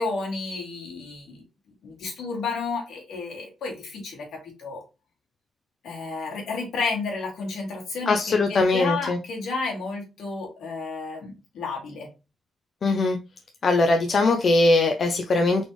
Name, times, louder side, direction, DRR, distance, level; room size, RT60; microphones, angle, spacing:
voice 1, 0.0-1.4 1.8-4.3 4.6-4.8 5.8-12.1, left 4 dB, 80° left, -1 dB, 2.0 m, -31 dB
voice 2, 8.1-9.2 12.8-13.2 13.6-15.6, left 2 dB, 50° left, 4 dB, 0.5 m, -21 dB
4.1 x 3.3 x 3.1 m, 0.29 s
cardioid pair, 95°, 0 cm